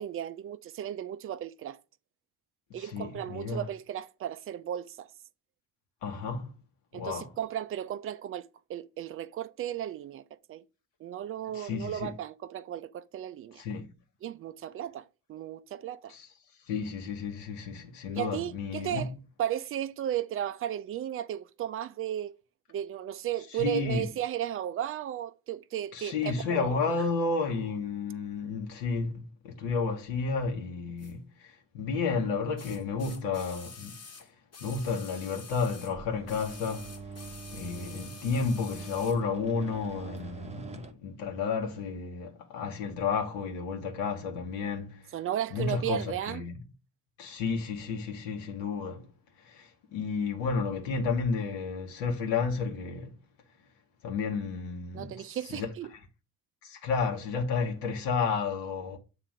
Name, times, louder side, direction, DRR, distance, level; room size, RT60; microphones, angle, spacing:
voice 1, 0.0-1.8 2.7-5.1 6.9-10.2 10.5-10.6 11.0-13.6 14.2-16.1 18.1-19.1 19.4-22.3 22.7-26.8 45.1-46.4 54.9-55.9, right 11 dB, 30° right, 0.4 m, -35 dB
voice 2, 2.8-3.7 6.0-6.5 6.9-7.3 11.5-12.1 13.6-13.9 16.1-16.3 16.7-19.2 23.5-24.1 25.9-33.9 34.6-36.9 37.5-45.1 45.5-46.6 47.2-49.1 49.4-53.1 54.0-55.7 56.6-59.0, left 5 dB, 60° left, 1.2 m, -32 dB
sound 1, 31.0-31.1 32.6-36.0 36.3-39.2 40.2-40.3, left 5 dB, 30° left, 1.3 m, -48 dB
sound 2, 35.9-40.9, right 4 dB, 15° right, 0.8 m, -44 dB
8.0 x 3.0 x 4.9 m
figure-of-eight pair, 45°, 47 cm